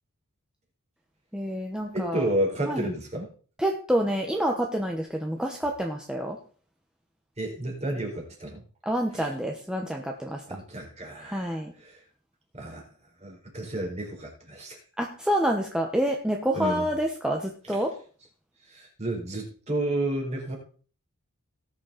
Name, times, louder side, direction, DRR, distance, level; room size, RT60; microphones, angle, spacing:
voice 1, 1.3-2.3 2.7-2.9 3.6-6.4 8.8-10.4 11.3-11.7 15.0-17.9, equal, 5° right, 1 dB, 1.2 m, -28 dB
voice 2, 1.9-3.3 7.4-8.6 9.1-9.3 10.5-12.0 12.5-12.8 13.2-14.8 16.5-16.9 17.7-17.8 18.7-20.5, right 1 dB, 30° right, 0 dB, 4.2 m, -31 dB
19.0 x 6.5 x 4.2 m, 0.41 s
head